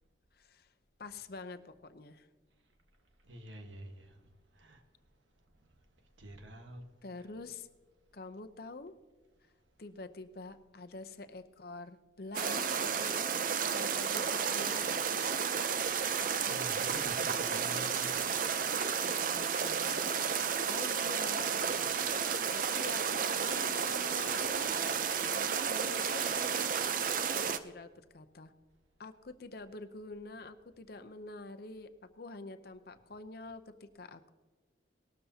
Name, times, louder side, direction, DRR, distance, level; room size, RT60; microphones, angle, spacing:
voice 1, 0.4-0.7 1.0-2.3 7.0-7.7 8.1-8.9 9.8-13.2 13.7-14.9 19.0-20.1 20.6-21.5 22.5-24.7 25.3-26.8 27.6-28.5 29.0-34.3, left 3 dB, 55° left, 0.7 m, -46 dB
voice 2, 3.2-4.2 4.5-4.8 6.2-6.8 7.2-7.3 16.4-18.3 18.9-19.1, equal, 85° right, 1.4 m, -48 dB
sound 1, 12.3-27.6, right 6 dB, 45° right, 0.5 m, -32 dB
19.0 x 12.5 x 2.8 m
head